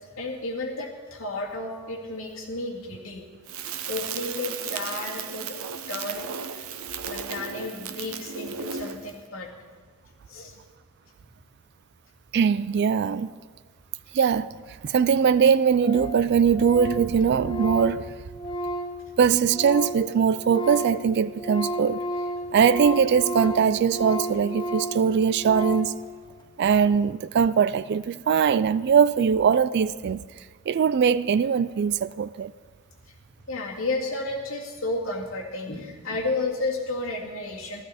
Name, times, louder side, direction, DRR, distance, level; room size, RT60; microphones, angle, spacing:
voice 1, 0.1-3.2 3.9-5.6 5.9-6.7 7.1-9.5 10.3-10.5 33.5-37.8, left 2 dB, 65° left, 2.1 m, -32 dB
Crackle, 3.5-9.2, right 7 dB, 85° right, 0.7 m, -35 dB
voice 2, 12.3-13.3 14.1-14.5 14.8-18.1 19.2-22.0 22.5-25.9 26.6-30.2 30.7-32.5, right 7 dB, 50° right, 0.3 m, -21 dB
Organ, 14.9-15.0 15.2-15.3 15.5-15.6 15.8-16.2 16.5-20.1 20.4-26.0, equal, 20° left, 0.9 m, -32 dB
15.0 x 13.0 x 4.2 m
head